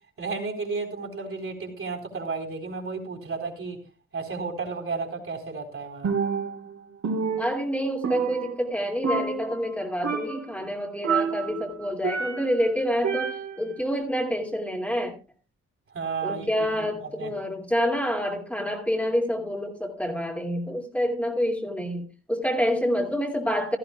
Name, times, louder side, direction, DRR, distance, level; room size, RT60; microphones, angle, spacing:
voice 1, 0.2-3.8 4.1-6.1 15.9-16.5 16.8-17.3, right 4 dB, 50° right, 2 dB, 4.1 m, -33 dB
Percussion, 6.0-6.7 7.0-8.8 9.0-9.7 10.0-10.5 11.0-12.6 13.0-13.7, right 5 dB, 70° right, 4.0 m, -29 dB
voice 2, 7.4-15.1 16.2-23.8, equal, 5° left, 0 dB, 2.5 m, -27 dB
17.0 x 14.0 x 2.4 m, 0.31 s
wide cardioid pair, 120°, 29 cm